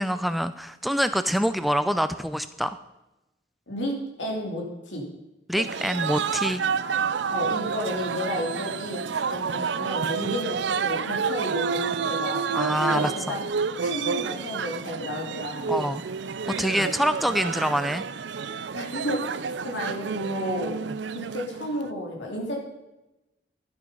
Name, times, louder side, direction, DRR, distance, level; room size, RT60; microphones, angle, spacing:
voice 1, 0.0-2.8 5.5-6.6 12.5-13.4 15.7-16.0 16.6-18.0, equal, ahead, 11 dB, 0.4 m, -25 dB
voice 2, 3.7-5.1 7.3-12.4 12.9-13.4 13.8-15.7 16.7-16.9 18.7-19.3 19.6-20.7 21.1-22.6, left 1 dB, 90° left, 0 dB, 2.8 m, -32 dB
sound 1, 5.6-21.9, right 6 dB, 80° right, 0.5 m, -29 dB
12.0 x 7.9 x 5.4 m, 0.97 s
head